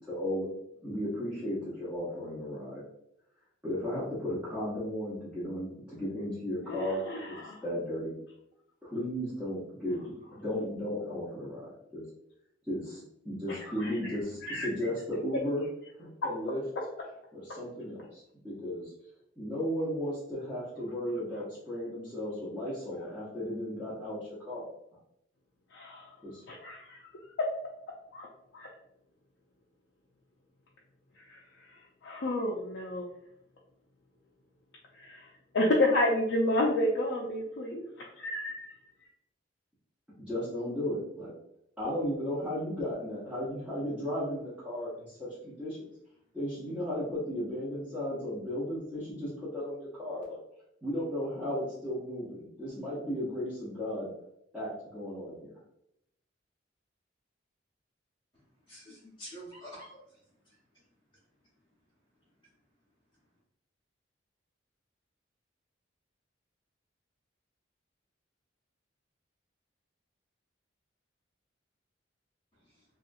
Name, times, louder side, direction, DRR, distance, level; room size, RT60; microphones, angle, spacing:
voice 1, 0.1-0.5 0.8-2.8 3.6-8.2 8.8-12.0 12.7-15.6 16.0-16.6 17.3-18.9 19.4-24.2 24.5-24.6 26.2-26.4 40.2-41.3 41.8-45.8 46.3-50.4 50.8-54.1 54.5-55.5, equal, 5° right, -11 dB, 0.8 m, -35 dB
voice 2, 6.6-7.6 13.5-14.7 25.7-26.1 26.5-27.3 28.1-28.3 28.5-28.7 31.2-33.1 34.9-35.3 35.5-37.9 38.2-38.7, left 1 dB, 60° left, -2 dB, 0.4 m, -31 dB
voice 3, 58.7-60.6 72.6-72.8, equal, 25° left, -9 dB, 0.8 m, -48 dB
2.8 x 2.3 x 2.5 m, 0.78 s
head